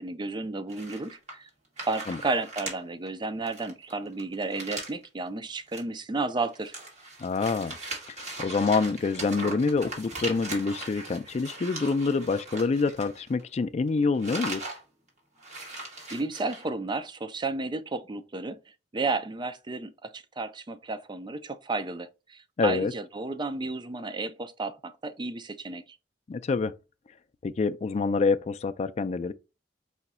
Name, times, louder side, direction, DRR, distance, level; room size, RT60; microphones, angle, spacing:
voice 1, 0.0-1.5 1.8-6.7 15.7-18.6 18.9-25.8, right 3 dB, 25° right, 0.4 m, -32 dB
sound 1, 0.7-1.5 1.8-2.8 3.1-3.2 3.5-5.0 5.6-5.8 6.2-13.6 13.9-14.8 15.1-15.2 15.4-16.6, right 2 dB, 40° right, 1.6 m, -39 dB
voice 2, 7.2-7.8 8.2-14.6 22.6-22.9 26.3-26.7 27.4-29.3, left 4 dB, 40° left, 0.3 m, -26 dB
4.9 x 2.3 x 4.1 m
head